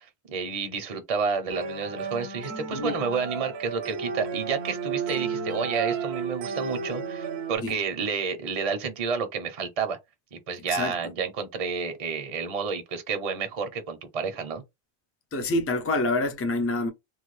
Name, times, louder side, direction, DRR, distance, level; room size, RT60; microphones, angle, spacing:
voice 1, 0.0-10.0 10.3-14.6, right 5 dB, 40° right, 0.6 m, -30 dB
sound 1, 1.5-7.6, right 5 dB, 75° right, 0.9 m, -32 dB
voice 2, 15.3-16.9, left 2 dB, 20° left, 0.4 m, -26 dB
3.1 x 2.2 x 3.1 m
omnidirectional pair, 1.1 m